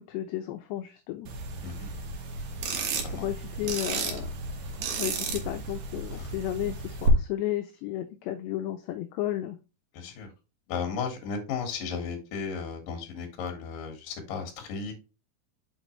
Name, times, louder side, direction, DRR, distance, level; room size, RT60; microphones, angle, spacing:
voice 1, 0.1-1.3 3.1-4.3 5.0-9.6, left 13 dB, 90° left, 8 dB, 2.4 m, -33 dB
sound 1, 1.3-7.1, right 4 dB, 70° right, 2.1 m, -33 dB
voice 2, 2.7-3.3 6.2-6.3 9.9-10.3 10.7-14.9, left 5 dB, 60° left, 3 dB, 2.6 m, -35 dB
6.5 x 5.8 x 3.1 m, 0.29 s
omnidirectional pair, 5.7 m